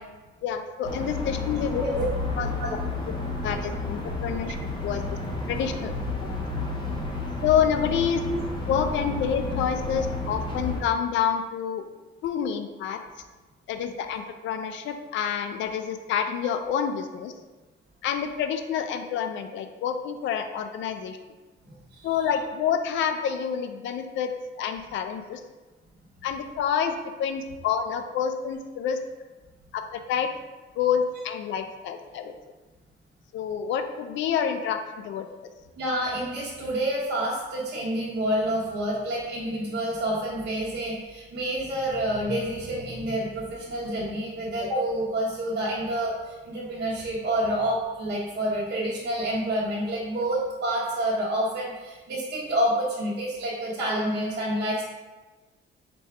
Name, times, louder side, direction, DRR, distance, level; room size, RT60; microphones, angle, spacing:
voice 1, 0.4-1.8 2.4-2.5 3.1-3.2 3.4-4.6 4.8-5.0 5.5-6.5 7.4-8.2 8.7-11.9 12.2-13.0 13.7-17.3 18.0-21.2 22.0-24.3 24.6-25.4 26.2-29.0 29.7-30.3 30.8-32.3 33.3-35.3, left 8 dB, 65° left, 7 dB, 0.4 m, -28 dB
sound 1, 0.8-10.8, left 3 dB, 20° left, 0.6 m, -31 dB
voice 2, 35.8-54.8, right 1 dB, 55° right, -9 dB, 0.9 m, -28 dB
4.2 x 2.3 x 4.7 m, 1.2 s
cardioid pair, 170°, 21 cm